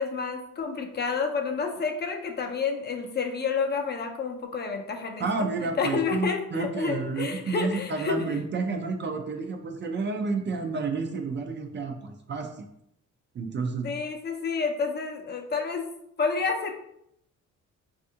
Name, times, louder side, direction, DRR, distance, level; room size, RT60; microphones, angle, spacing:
voice 1, 0.0-5.3 5.8-8.1 13.8-15.9 16.2-16.7, left 5 dB, 35° left, 3 dB, 0.5 m, -29 dB
voice 2, 5.2-12.6 13.3-13.9, right 4 dB, 40° right, 5 dB, 0.4 m, -30 dB
3.4 x 2.4 x 2.7 m, 0.76 s
cardioid pair, 90°, 30 cm